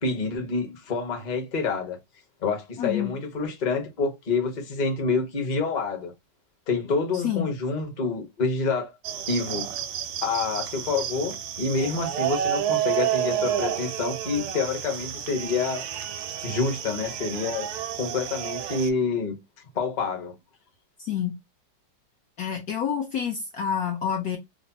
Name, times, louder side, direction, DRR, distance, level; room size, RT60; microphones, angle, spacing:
voice 1, 0.0-2.0 2.4-6.1 6.7-8.9 9.3-9.7 10.2-15.9 16.4-17.7 18.0-19.4 19.7-20.3, left 4 dB, 35° left, 0.7 m, -27 dB
voice 2, 2.8-3.1 7.1-7.5 21.0-21.4 22.4-24.4, left 8 dB, 70° left, 0.9 m, -28 dB
sound 1, 9.0-18.9, right 10 dB, 70° right, 1.0 m, -30 dB
3.4 x 2.0 x 3.9 m
omnidirectional pair, 2.1 m